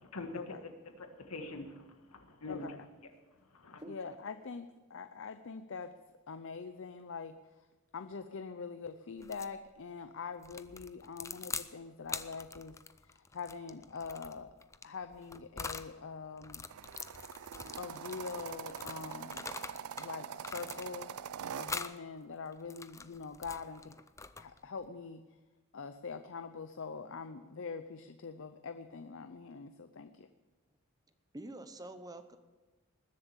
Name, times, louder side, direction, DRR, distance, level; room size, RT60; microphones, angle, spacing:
voice 1, 0.0-2.8 3.4-3.8, left 2 dB, 90° left, 6 dB, 1.8 m, -45 dB
voice 2, 2.5-2.8 3.9-5.9 6.3-7.4 7.9-12.8 13.0-14.5 14.8-16.7 17.8-19.4 20.0-21.1 21.6-24.0 24.4-25.2 25.7-30.3, left 5 dB, 60° left, 10 dB, 0.6 m, -44 dB
sound 1, 9.2-9.6 10.4-11.7 12.1-15.9 16.4-20.1 20.4-21.2 21.6-22.0 22.5-24.6, left 4 dB, 15° left, 0.4 m, -44 dB
sound 2, 16.7-21.8, right 8 dB, 80° right, 0.4 m, -44 dB
voice 3, 31.3-32.4, right 1 dB, 15° right, 10 dB, 0.8 m, -46 dB
20.0 x 7.4 x 7.3 m, 1.2 s
head